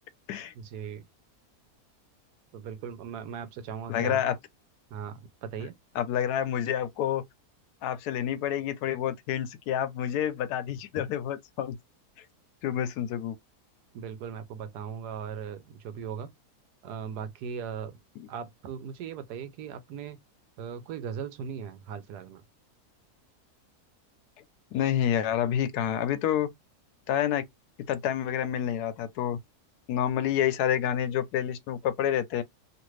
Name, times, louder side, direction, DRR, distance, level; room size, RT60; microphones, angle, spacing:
voice 1, 0.5-1.1 2.5-4.2 4.9-5.7 13.9-16.3 16.8-18.0 18.3-20.2 20.6-22.4, right 7 dB, 90° right, 1.2 m, -38 dB
voice 2, 3.9-4.4 6.0-7.2 7.8-11.8 12.2-12.3 12.6-13.3 24.7-26.5 27.1-27.4 27.9-29.4 29.9-32.4, left 10 dB, 80° left, 1.1 m, -28 dB
2.9 x 2.5 x 3.1 m
omnidirectional pair, 1.7 m